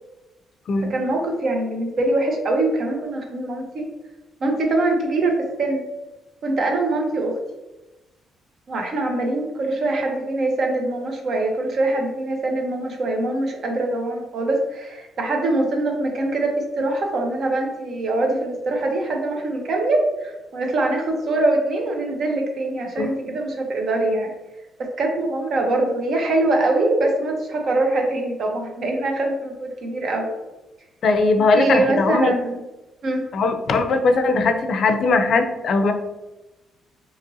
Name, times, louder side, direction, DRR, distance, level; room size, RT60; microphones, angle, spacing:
voice 1, 0.9-3.9 4.4-5.9 6.4-7.4 8.7-24.3 24.8-30.3 31.5-32.6 33.0-33.3, right 2 dB, 60° right, 2 dB, 0.7 m, -23 dB
voice 2, 31.0-32.3 33.3-35.9, left 3 dB, 60° left, 7 dB, 0.4 m, -19 dB
2.9 x 2.5 x 2.6 m, 1.0 s
cardioid pair, 90°, 0 cm